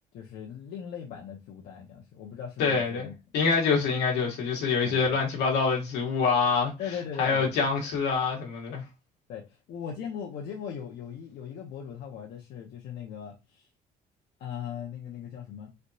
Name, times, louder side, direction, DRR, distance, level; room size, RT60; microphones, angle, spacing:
voice 1, 0.1-3.1 4.8-5.2 6.8-7.7 9.3-13.7 14.4-15.7, left 8 dB, 70° left, 0.7 m, -39 dB
voice 2, 2.6-3.1 3.3-6.7 7.2-8.8, left 5 dB, 85° left, 1.2 m, -25 dB
3.3 x 2.8 x 2.7 m
cardioid pair, 110°, 17 cm